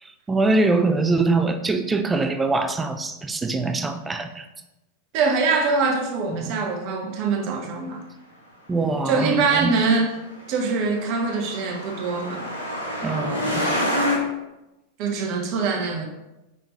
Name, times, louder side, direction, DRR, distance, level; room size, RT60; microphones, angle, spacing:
voice 1, 0.0-4.5 6.3-6.5 8.7-9.7 13.0-13.6, right 3 dB, 15° right, 8 dB, 0.4 m, -23 dB
voice 2, 5.1-8.0 9.1-10.1 10.5-12.5 15.0-16.1, right 4 dB, 45° right, 3 dB, 0.8 m, -23 dB
Truck, 10.0-14.2, left 1 dB, 85° left, 1.1 m, -27 dB
5.2 x 3.5 x 2.9 m, 0.97 s
figure-of-eight pair, 90°, 0 cm